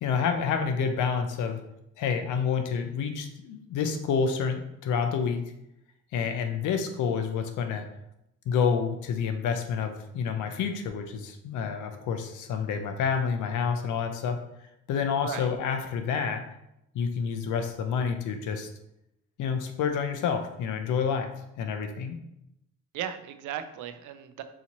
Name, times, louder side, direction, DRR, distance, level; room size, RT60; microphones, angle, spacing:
voice 1, 0.0-1.6 2.0-5.4 6.1-7.8 8.5-14.4 14.9-16.5 16.9-18.7 19.4-21.3 21.6-22.2, left 6 dB, 80° left, 6 dB, 0.6 m, -28 dB
voice 2, 22.9-24.4, right 9 dB, 80° right, 10 dB, 0.5 m, -36 dB
4.0 x 2.8 x 2.9 m, 0.82 s
cardioid pair, 90°, 30 cm